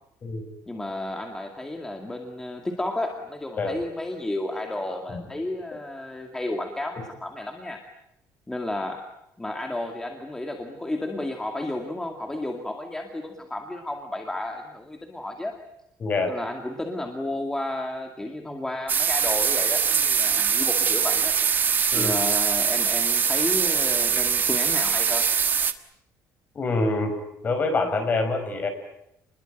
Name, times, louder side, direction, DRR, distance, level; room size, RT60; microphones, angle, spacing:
voice 1, 0.7-7.8 8.5-9.1 9.4-15.6 16.3-21.4 21.9-25.3, left 1 dB, 10° left, 3 dB, 2.2 m, -32 dB
voice 2, 16.0-16.3 21.9-22.2 26.5-27.1 27.4-28.7, left 3 dB, 30° left, 7 dB, 5.0 m, -25 dB
sound 1, 18.9-25.7, right 6 dB, 30° right, 1.4 m, -23 dB
29.5 x 21.5 x 9.1 m, 0.81 s
cardioid pair, 165°, 7 cm